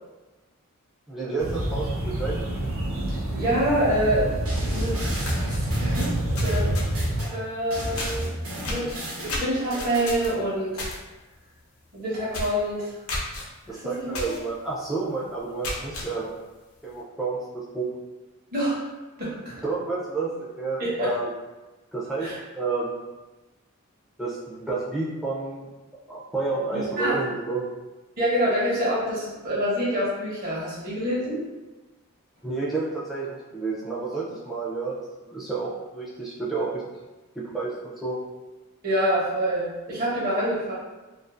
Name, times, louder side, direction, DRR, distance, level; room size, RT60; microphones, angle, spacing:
voice 1, 1.1-2.5 13.7-16.4 16.8-17.9 19.6-21.3 21.9-23.1 24.2-27.7 32.4-36.8 37.3-38.2, right 3 dB, ahead, -7 dB, 0.4 m, -30 dB
sound 1, 1.4-7.2, right 1 dB, 70° right, 0.5 m, -27 dB
voice 2, 3.3-4.3 4.7-6.1 6.4-6.9 7.3-8.3 8.7-10.9 11.9-12.9 13.7-14.1 18.5-18.9 19.2-19.6 20.8-21.1 22.2-22.4 26.7-27.2 28.2-31.4 38.8-40.7, equal, 40° right, -7 dB, 0.9 m, -26 dB
sound 2, 4.5-7.3 7.7-10.1, right 1 dB, 85° right, 1.0 m, -33 dB
sound 3, 5.3-7.1 8.0-8.3 8.6-11.0 11.3-11.6 11.9-12.0 12.3-12.6 13.1-13.4 14.1-14.4 14.8-14.9 15.4-16.1, left 2 dB, 80° left, 0.6 m, -33 dB
2.5 x 2.4 x 2.4 m, 1.2 s
head